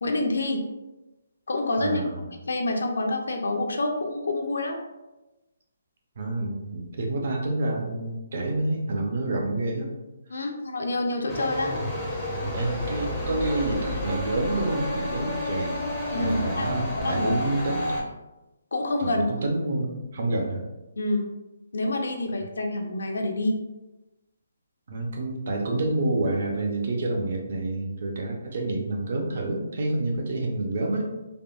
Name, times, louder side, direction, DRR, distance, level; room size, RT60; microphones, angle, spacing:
voice 1, 0.0-0.6 1.5-2.0 2.3-4.8 10.3-11.8 16.1-17.3 18.7-19.3 21.0-21.3 21.7-23.6, left 2 dB, 85° left, 3 dB, 0.5 m, -27 dB
voice 2, 1.8-2.2 6.2-9.9 10.3-10.5 12.5-15.8 16.1-17.9 19.0-20.6 24.9-31.1, right 2 dB, 45° right, 1 dB, 0.5 m, -28 dB
sound 1, 11.3-18.0, left 1 dB, 5° left, 0.5 m, -30 dB
3.5 x 2.0 x 2.3 m, 1.0 s
hypercardioid pair, 175°, 0 cm